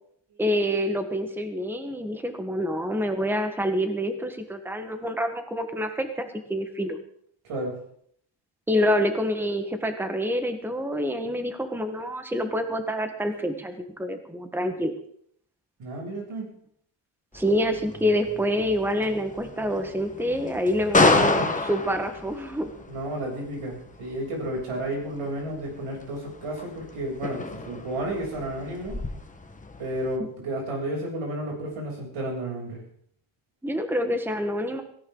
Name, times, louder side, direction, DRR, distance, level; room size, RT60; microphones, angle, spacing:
voice 1, 0.4-7.0 8.7-14.9 17.3-22.7 33.6-34.8, equal, 5° right, 6 dB, 1.4 m, -27 dB
voice 2, 7.4-7.8 15.8-16.5 21.0-21.5 22.9-29.0 29.8-32.8, right 1 dB, 90° right, -1 dB, 7.6 m, -32 dB
sound 1, 17.3-30.1, left 3 dB, 15° left, 1.3 m, -30 dB
17.5 x 17.0 x 3.9 m, 0.65 s
wide cardioid pair, 145°, 49 cm